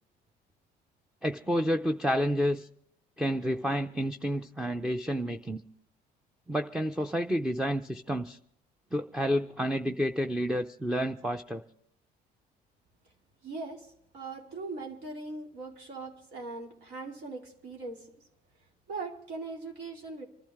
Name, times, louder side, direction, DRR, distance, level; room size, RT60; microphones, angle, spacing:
voice 1, 1.2-2.7 3.2-5.6 6.5-8.4 8.9-11.6, equal, 5° right, 7 dB, 0.5 m, -29 dB
voice 2, 13.4-13.9 14.1-18.0 18.9-20.2, right 3 dB, 75° right, 0 dB, 2.7 m, -40 dB
26.5 x 12.0 x 3.6 m, 0.67 s
cardioid pair, 110°, 17 cm